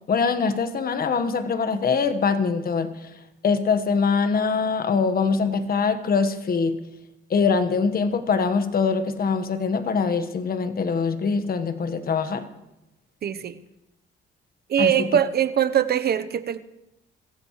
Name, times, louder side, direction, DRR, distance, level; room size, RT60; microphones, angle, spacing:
voice 1, 0.1-3.1 3.4-6.8 7.3-12.4 14.8-15.1, left 5 dB, 50° left, 10 dB, 1.4 m, -23 dB
voice 2, 13.2-13.6 14.7-16.6, right 9 dB, 55° right, 11 dB, 0.9 m, -22 dB
24.5 x 15.0 x 3.2 m, 0.91 s
cardioid pair, 90°, 20 cm